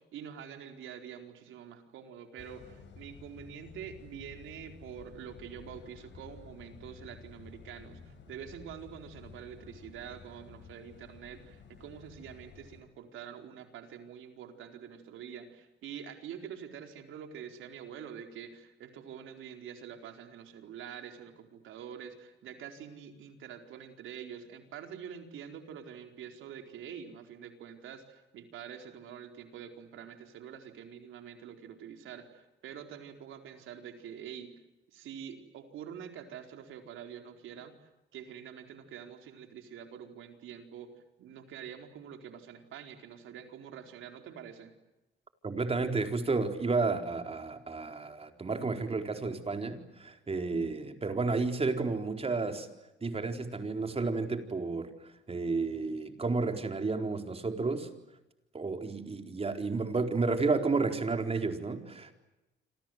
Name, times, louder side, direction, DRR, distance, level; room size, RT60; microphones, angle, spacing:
voice 1, 0.0-34.5 34.9-37.7 38.1-40.9 41.2-44.7, right 8 dB, 85° right, 5 dB, 4.4 m, -46 dB
sound 1, 2.4-12.8, left 6 dB, 65° left, 7.5 m, -52 dB
voice 2, 45.4-52.7 53.0-54.9 55.3-57.9 58.5-62.1, right 3 dB, 30° right, 6 dB, 4.2 m, -31 dB
27.5 x 27.5 x 7.9 m, 0.96 s
cardioid pair, 90°, 20 cm